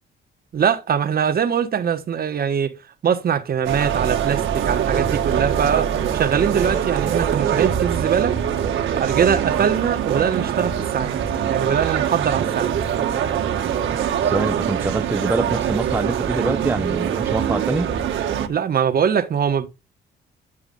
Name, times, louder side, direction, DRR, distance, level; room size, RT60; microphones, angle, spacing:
voice 1, 0.5-2.7 3.0-8.3 9.0-11.1 11.5-12.7 18.5-19.7, right 7 dB, 50° right, 1.1 m, -22 dB
sound 1, 3.6-18.5, right 9 dB, 75° right, 1.4 m, -23 dB
voice 2, 14.2-17.9, right 2 dB, 10° right, 0.5 m, -25 dB
10.0 x 4.8 x 3.8 m
cardioid pair, 90°, 20 cm